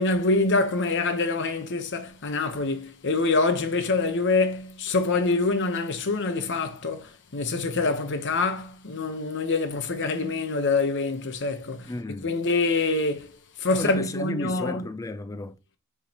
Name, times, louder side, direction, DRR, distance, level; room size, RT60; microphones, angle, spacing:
voice 1, 0.0-11.9 12.2-13.3 13.6-14.8, left 3 dB, 55° left, 1.0 m, -25 dB
voice 2, 11.9-12.3 13.8-15.6, left 2 dB, 15° left, 0.4 m, -33 dB
7.7 x 4.8 x 2.9 m
head